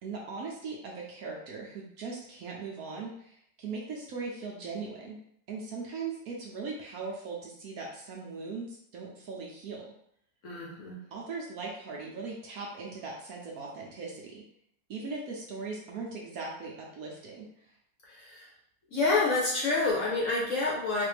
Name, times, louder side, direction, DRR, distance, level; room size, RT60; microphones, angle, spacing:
voice 1, 0.0-5.2 5.5-9.8 11.1-14.4 14.9-17.7, right 4 dB, 65° right, -2 dB, 1.0 m, -39 dB
voice 2, 10.4-11.0 18.1-18.5 18.9-21.0, left 3 dB, 55° left, -4 dB, 1.0 m, -28 dB
4.1 x 2.5 x 3.3 m, 0.72 s
omnidirectional pair, 1.9 m